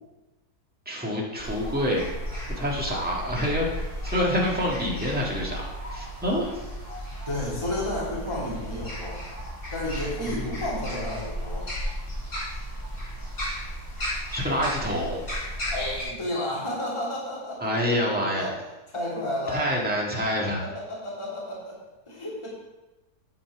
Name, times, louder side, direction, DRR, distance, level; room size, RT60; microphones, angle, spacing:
voice 1, 0.8-2.0 2.6-3.7 4.0-6.5 10.2-10.6 14.3-15.2 17.6-18.5 19.5-20.6, equal, 5° right, -4 dB, 1.7 m, -27 dB
sound 1, 1.4-16.0, equal, 50° left, 4.4 m, -34 dB
voice 2, 7.3-9.2 9.7-11.7 15.7-18.5 18.9-19.8 20.6-22.5, left 1 dB, 15° left, -6 dB, 2.5 m, -32 dB
9.4 x 7.1 x 4.8 m, 1.1 s
omnidirectional pair, 1.7 m